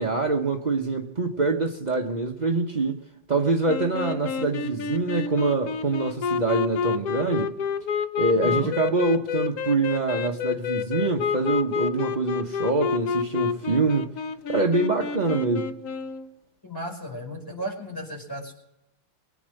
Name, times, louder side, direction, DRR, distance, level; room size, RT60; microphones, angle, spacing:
voice 1, 0.0-3.0 3.3-7.5 8.2-14.1 14.5-15.7, right 3 dB, 40° right, 0.6 m, -25 dB
sound 1, 3.7-16.3, left 6 dB, 65° left, 1.0 m, -29 dB
voice 2, 8.3-8.7 16.6-18.5, equal, 10° left, 5.0 m, -35 dB
23.5 x 9.3 x 6.5 m
omnidirectional pair, 2.4 m